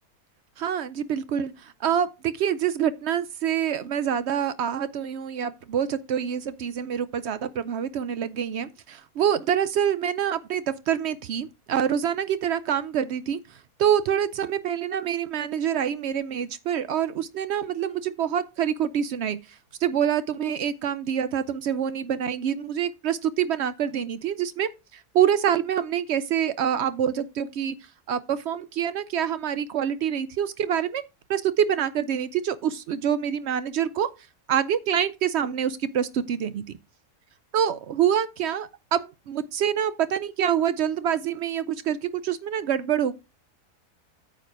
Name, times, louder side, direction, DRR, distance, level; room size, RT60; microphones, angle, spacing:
voice 1, 0.6-27.7 28.1-31.0 31.3-34.1 34.5-36.6 37.5-43.1, right 9 dB, 75° right, 0.6 m, -26 dB
9.0 x 4.8 x 4.8 m
omnidirectional pair, 1.7 m